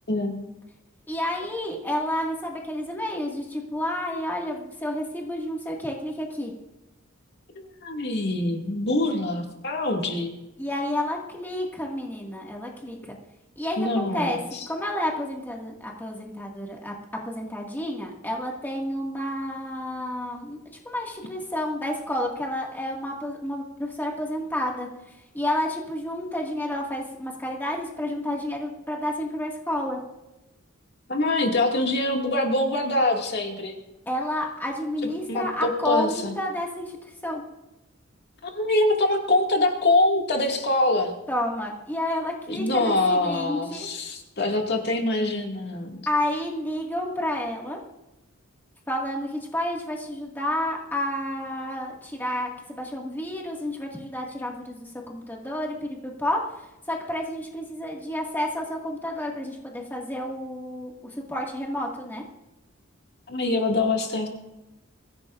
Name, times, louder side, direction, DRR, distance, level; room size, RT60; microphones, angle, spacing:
voice 1, 1.1-6.5 10.6-13.2 13.6-14.4 14.7-16.9 17.2-20.6 20.9-24.9 25.3-30.0 34.1-36.9 37.2-37.4 41.3-43.9 46.1-47.8 48.9-56.4 56.9-62.2, left 1 dB, 10° left, -1 dB, 1.9 m, -30 dB
voice 2, 7.6-10.3 13.8-14.6 31.1-33.7 35.0-36.3 38.4-41.1 42.5-46.1 63.3-64.3, left 2 dB, 50° left, 1 dB, 2.2 m, -24 dB
23.5 x 15.5 x 2.5 m, 0.95 s
head